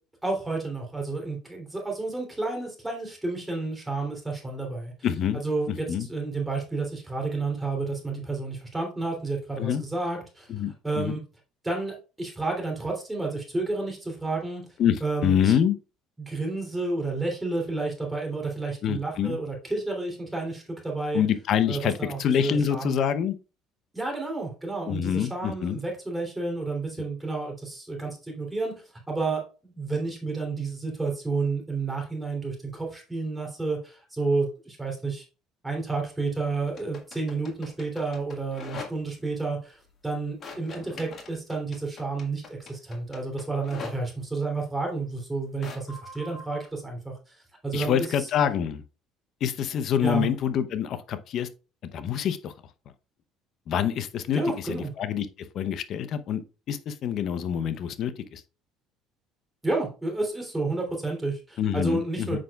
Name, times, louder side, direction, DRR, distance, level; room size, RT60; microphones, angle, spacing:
voice 1, 0.2-4.9 5.3-10.5 10.8-11.2 11.6-14.6 15.0-15.5 16.2-21.2 21.7-23.0 23.9-35.2 35.6-47.3 47.6-48.3 50.0-50.3 54.3-54.9 59.6-62.4, right 3 dB, 10° right, 0 dB, 3.0 m, -31 dB
voice 2, 5.0-5.4 5.7-6.1 9.6-9.8 10.5-11.2 14.8-15.7 18.8-19.4 21.1-23.3 24.9-25.8 47.7-48.8 49.4-51.5 51.9-52.5 53.7-56.4 56.7-58.4 61.6-62.4, left 8 dB, 55° left, 12 dB, 0.7 m, -26 dB
sound 1, 36.7-39.2 40.4-44.0 45.6-46.7, left 4 dB, 40° left, 1.8 m, -42 dB
7.5 x 5.7 x 2.3 m, 0.33 s
supercardioid pair, 100°, 0 cm